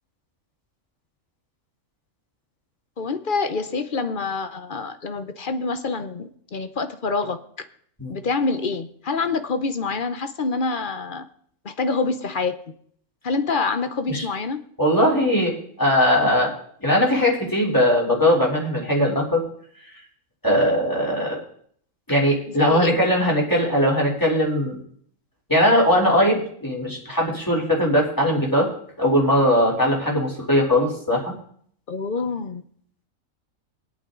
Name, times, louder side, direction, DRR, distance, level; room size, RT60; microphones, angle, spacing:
voice 1, 3.0-7.4 8.1-11.2 11.6-12.7 13.2-14.6 22.5-23.1 31.9-32.6, left 4 dB, 45° left, 10 dB, 0.9 m, -26 dB
voice 2, 14.8-16.5 16.8-19.4 20.4-21.4 22.1-24.8 25.5-28.7 29.0-31.3, equal, 15° left, -3 dB, 3.4 m, -20 dB
23.5 x 8.6 x 3.8 m, 0.63 s
omnidirectional pair, 1.4 m